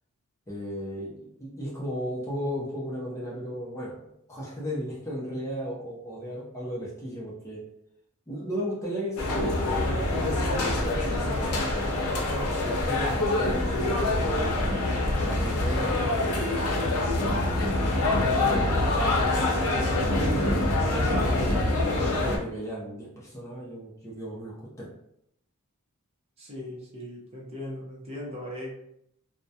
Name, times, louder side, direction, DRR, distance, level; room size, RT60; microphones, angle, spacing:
voice 1, 0.5-7.6 8.3-14.5 15.2-18.7 19.0-20.4 20.8-21.5 22.0-24.9, equal, 15° left, -6 dB, 0.5 m, -35 dB
sound 1, 9.2-22.4, left 2 dB, 85° left, 0.6 m, -25 dB
voice 2, 19.3-19.7 26.4-28.7, left 1 dB, 30° right, -4 dB, 0.6 m, -39 dB
2.3 x 2.0 x 2.6 m, 0.75 s
head